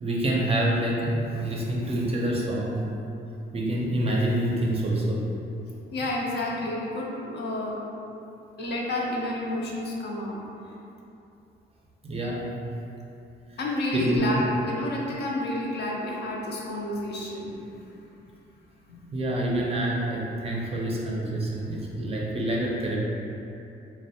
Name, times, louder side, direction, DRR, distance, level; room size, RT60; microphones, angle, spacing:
voice 1, 0.0-2.9 3.5-5.3 12.0-12.5 13.5-13.6 13.9-14.2 19.1-23.0, right 1 dB, 30° right, -3 dB, 0.4 m, -27 dB
voice 2, 5.9-7.7 8.6-10.4 13.6-17.7 18.9-19.1, left 1 dB, 55° left, -3 dB, 0.5 m, -30 dB
2.5 x 2.0 x 2.6 m, 2.8 s
cardioid pair, 90°, 20 cm